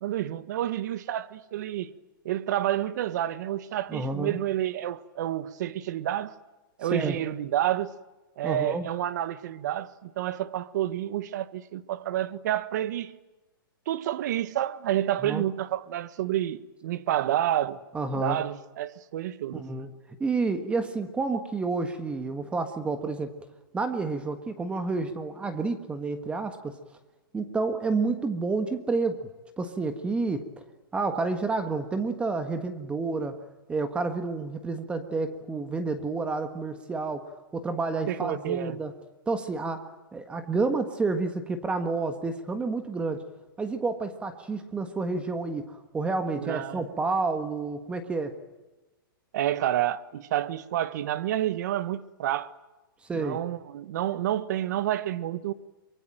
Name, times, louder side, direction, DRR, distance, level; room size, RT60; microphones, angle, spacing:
voice 1, 0.0-1.9 2.2-6.3 6.8-7.9 8.4-13.1 13.9-17.8 18.1-19.6 38.1-38.8 46.4-46.8 49.3-52.5 53.1-55.5, right 12 dB, 50° right, 1.5 m, -29 dB
voice 2, 3.9-4.4 6.9-7.2 8.4-8.9 15.2-15.4 17.9-18.4 19.5-19.9 20.2-23.3 23.7-26.8 27.3-29.3 29.6-30.5 30.9-33.4 33.7-38.9 39.3-43.2 43.6-48.4 53.1-53.4, right 3 dB, 10° right, 1.6 m, -29 dB
24.5 x 23.5 x 9.1 m
hypercardioid pair, 155°, 12 cm